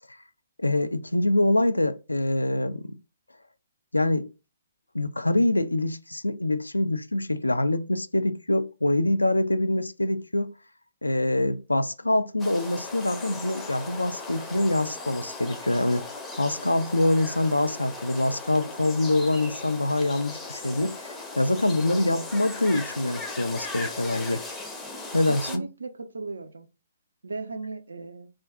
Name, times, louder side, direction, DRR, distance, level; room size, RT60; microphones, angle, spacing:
voice 1, 0.6-2.9 3.9-4.3 4.9-10.5 11.0-16.0 16.4-24.4 25.1-25.6, left 1 dB, 85° left, 0.3 m, -25 dB
sound 1, 12.4-25.6, left 3 dB, 10° left, 0.5 m, -38 dB
voice 2, 25.3-26.7 27.2-28.3, right 3 dB, 70° right, 0.5 m, -37 dB
2.4 x 2.2 x 3.5 m
figure-of-eight pair, 125°, 0 cm